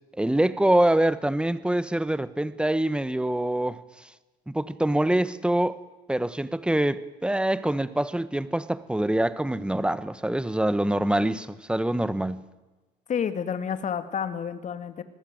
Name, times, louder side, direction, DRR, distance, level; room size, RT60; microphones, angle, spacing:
voice 1, 0.2-3.8 4.5-5.8 6.1-12.4, right 1 dB, 5° right, 1.2 m, -25 dB
voice 2, 13.1-15.0, left 7 dB, 45° left, 2.3 m, -29 dB
26.0 x 20.0 x 9.3 m
cardioid pair, 110°, 17 cm